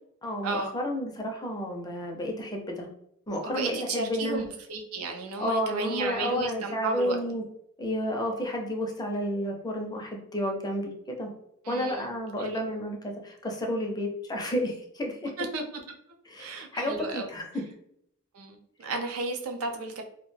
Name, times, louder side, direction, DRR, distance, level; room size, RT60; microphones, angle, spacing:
voice 1, 0.2-2.9 3.3-4.4 5.4-7.4 7.8-11.3 11.7-15.3 16.3-17.6, equal, 20° left, 1 dB, 0.4 m, -31 dB
voice 2, 3.4-7.2 11.6-12.1 12.4-12.6 15.4-15.6 16.4-17.3 18.3-20.0, right 3 dB, 85° right, 4 dB, 0.5 m, -33 dB
2.2 x 2.1 x 3.1 m, 0.75 s
head